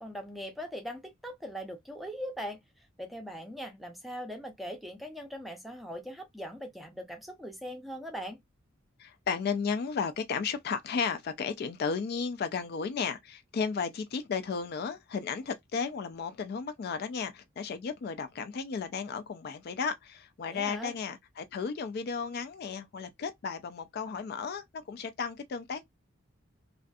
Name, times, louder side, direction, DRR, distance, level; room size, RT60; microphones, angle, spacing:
voice 1, 0.0-2.6 3.0-8.4 20.5-20.9, equal, ahead, 0.5 m, -40 dB
voice 2, 9.0-25.9, left 5 dB, 50° left, 0.3 m, -34 dB
2.5 x 2.4 x 2.3 m
head